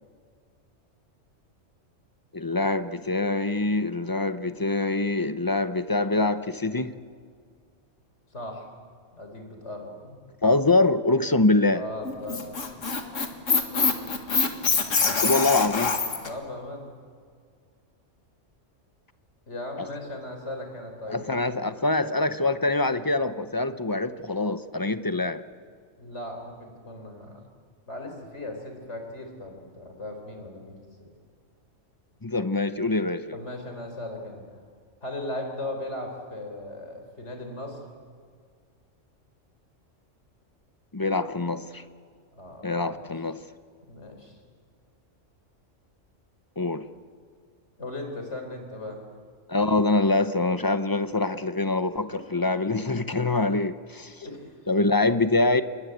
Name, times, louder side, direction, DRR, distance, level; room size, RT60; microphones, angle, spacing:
voice 1, 2.3-7.0 10.4-11.8 15.2-15.9 21.1-25.4 32.2-33.4 40.9-41.8 42.6-43.4 46.6-46.9 49.5-54.2 54.7-55.6, left 2 dB, 20° left, 11 dB, 0.6 m, -24 dB
voice 2, 8.3-8.7 9.1-10.2 11.7-12.5 15.0-15.7 16.2-16.8 19.5-21.2 26.0-27.4 27.9-30.8 31.0-31.1 33.3-34.4 35.0-37.8 42.3-43.0 43.9-44.4 47.8-49.0 52.1-52.2 54.2-54.5, left 1 dB, 65° left, 4 dB, 4.6 m, -37 dB
Squeak, 12.0-16.3, left 4 dB, 80° left, 2.2 m, -24 dB
28.0 x 21.5 x 8.1 m, 2.1 s
omnidirectional pair, 1.3 m